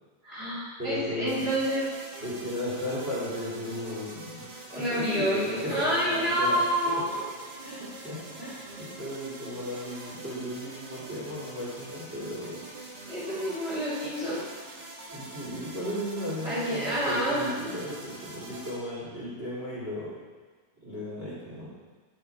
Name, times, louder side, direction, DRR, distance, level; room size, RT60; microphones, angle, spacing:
voice 1, 0.2-1.8 4.7-7.2 13.1-14.5 16.4-17.5, equal, 20° left, -9 dB, 2.4 m, -28 dB
voice 2, 0.8-1.6 2.2-4.4 4.7-6.6 7.0-7.1 7.6-12.6 15.1-20.1 20.8-21.7, left 1 dB, 20° right, -10 dB, 2.4 m, -35 dB
sound 1, 1.2-18.7, right 2 dB, 50° right, 1.4 m, -44 dB
9.2 x 6.9 x 4.6 m, 1.4 s
omnidirectional pair, 4.0 m